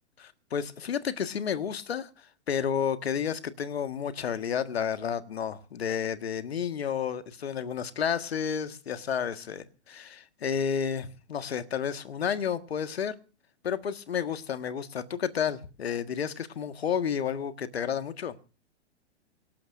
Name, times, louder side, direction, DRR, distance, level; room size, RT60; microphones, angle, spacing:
voice 1, 0.2-13.2 13.6-18.3, left 7 dB, 60° left, 1.7 m, -31 dB
25.0 x 18.5 x 2.6 m
figure-of-eight pair, 110°, 34 cm